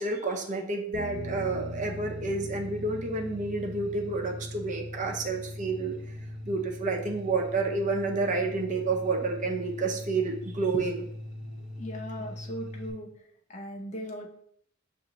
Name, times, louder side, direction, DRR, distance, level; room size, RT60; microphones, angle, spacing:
voice 1, 0.0-5.9 6.4-11.1, right 3 dB, 40° right, 2 dB, 0.6 m, -29 dB
sound 1, 0.9-8.5 11.6-11.7, left 1 dB, 85° left, 1.2 m, -46 dB
sound 2, 1.1-12.9, left 1 dB, 5° right, 0.9 m, -41 dB
voice 2, 11.8-13.1 13.5-14.3, equal, 35° left, 1 dB, 0.6 m, -38 dB
6.8 x 2.5 x 2.9 m, 0.68 s
head